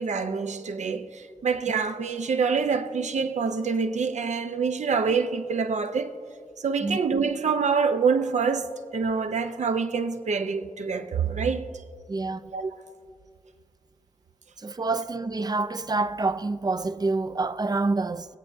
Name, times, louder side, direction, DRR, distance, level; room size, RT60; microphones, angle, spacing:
voice 1, 0.0-6.2 6.6-11.7 12.5-12.7, right 5 dB, 75° right, 0.7 m, -26 dB
voice 2, 12.1-12.5 14.6-18.4, right 3 dB, 35° right, 0.4 m, -27 dB
24.0 x 8.6 x 2.7 m
wide cardioid pair, 70°, 12 cm